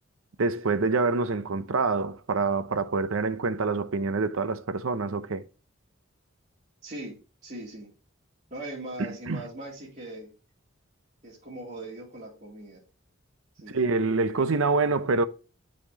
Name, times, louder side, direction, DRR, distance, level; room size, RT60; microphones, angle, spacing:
voice 1, 0.4-5.4 9.0-9.4 13.7-15.2, right 3 dB, 75° right, 0.7 m, -26 dB
voice 2, 6.8-7.2 7.4-7.9 8.5-10.3 11.2-12.8 13.5-13.8, right 1 dB, 35° right, 2.7 m, -40 dB
9.9 x 4.3 x 2.9 m
head